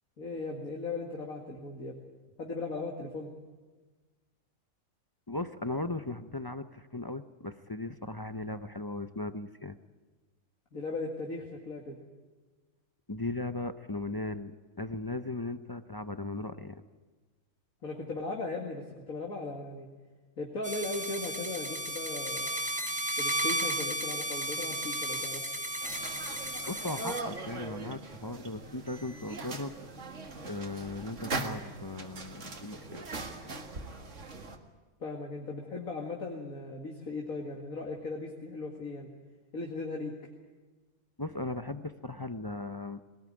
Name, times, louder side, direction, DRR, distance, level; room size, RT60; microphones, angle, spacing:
voice 1, 0.2-2.0 2.4-3.3 10.7-12.0 17.8-19.9 20.4-22.5 23.2-25.4 35.0-39.1 39.5-40.1, left 3 dB, 65° left, 0 dB, 2.5 m, -37 dB
voice 2, 5.3-9.8 13.1-16.8 26.6-29.7 30.5-33.0 41.2-43.0, left 2 dB, 25° left, 10 dB, 0.5 m, -37 dB
sound 1, 20.6-27.2, right 1 dB, 5° right, 1.7 m, -34 dB
sound 2, 25.8-34.6, right 3 dB, 55° right, 2.2 m, -40 dB
22.5 x 19.0 x 9.8 m, 1.3 s
omnidirectional pair, 1.6 m